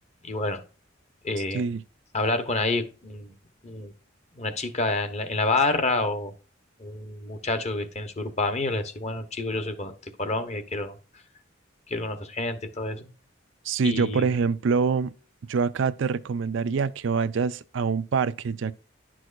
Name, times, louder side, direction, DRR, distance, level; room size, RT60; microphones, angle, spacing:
voice 1, 0.2-0.6 1.2-1.6 2.1-3.3 3.6-3.9 4.4-6.3 6.8-9.9 10.2-11.0 11.9-13.1 13.8-14.2, left 2 dB, 35° left, 1.0 m, -28 dB
voice 2, 13.6-15.1 15.5-18.7, right 5 dB, 65° right, 0.4 m, -25 dB
10.5 x 6.2 x 2.5 m
head